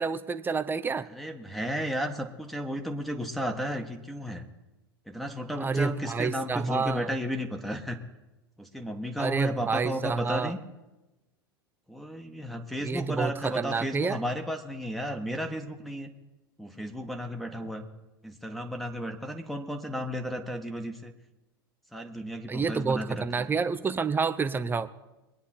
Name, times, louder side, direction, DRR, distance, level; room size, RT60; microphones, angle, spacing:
voice 1, 0.0-1.1 5.6-7.1 9.2-10.5 12.8-14.2 22.5-24.9, right 4 dB, 15° right, 10 dB, 0.9 m, -29 dB
voice 2, 1.1-4.4 5.1-8.0 8.6-10.6 11.9-16.1 16.6-17.9 18.2-21.1 21.9-23.5, equal, ahead, 5 dB, 1.6 m, -33 dB
23.0 x 9.5 x 4.5 m, 1.0 s
hypercardioid pair, 90°, 12 cm